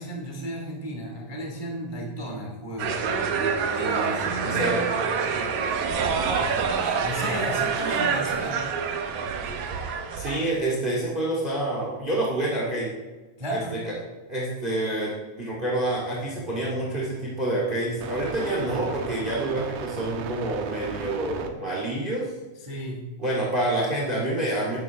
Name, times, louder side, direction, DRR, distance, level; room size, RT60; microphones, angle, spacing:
voice 1, 0.0-3.0 3.7-5.0 6.3-8.7 13.4-13.8 22.6-23.0, equal, 40° right, -1 dB, 0.4 m, -33 dB
sound 1, 2.8-10.5, right 5 dB, 65° right, 2.0 m, -26 dB
voice 2, 3.9-4.9 10.2-12.9 13.5-13.6 13.8-13.9 14.3-15.1 15.4-22.3 23.2-24.8, right 1 dB, 20° right, -4 dB, 1.7 m, -27 dB
sound 2, 16.0-21.5, right 6 dB, 90° right, 3.0 m, -38 dB
12.5 x 10.5 x 3.6 m, 1.2 s
omnidirectional pair, 4.6 m